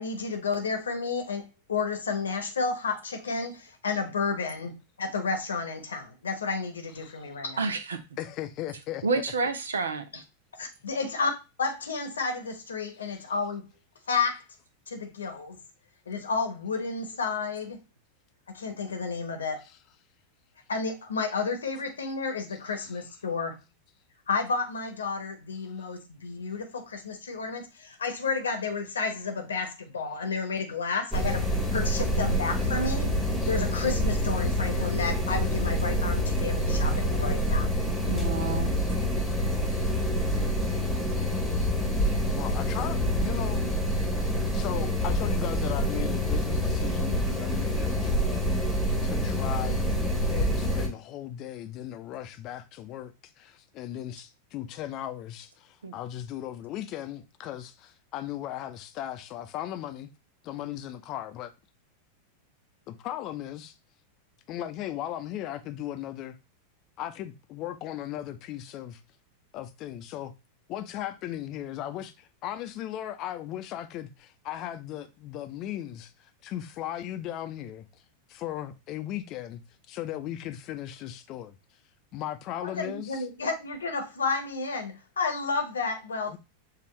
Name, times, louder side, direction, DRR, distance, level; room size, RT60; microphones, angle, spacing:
voice 1, 0.0-7.7 10.1-10.2 10.6-11.3 11.6-13.6 14.1-14.4 14.9-15.6 16.1-17.8 18.5-19.6 20.7-23.6 24.3-33.1 33.5-37.7 82.6-86.4, left 4 dB, 70° left, 0.9 m, -31 dB
voice 2, 7.6-8.0 9.0-10.0 38.1-38.7 55.8-55.9, right 4 dB, 70° right, 0.6 m, -29 dB
voice 3, 8.2-9.2 19.6-19.7 22.5-23.0 25.8-25.9 33.4-33.5 36.6-36.7 42.3-43.7 44.5-48.5 48.8-60.1 60.4-61.5 62.9-63.7 64.5-66.4 67.0-69.0 69.5-70.3 70.7-78.0 78.3-79.6 79.9-81.6 82.1-83.2 86.3-86.4, left 12 dB, 40° left, 0.6 m, -37 dB
sound 1, 31.1-50.9, equal, ahead, 1.2 m, -27 dB
6.9 x 2.5 x 3.0 m
figure-of-eight pair, 90°, 0 cm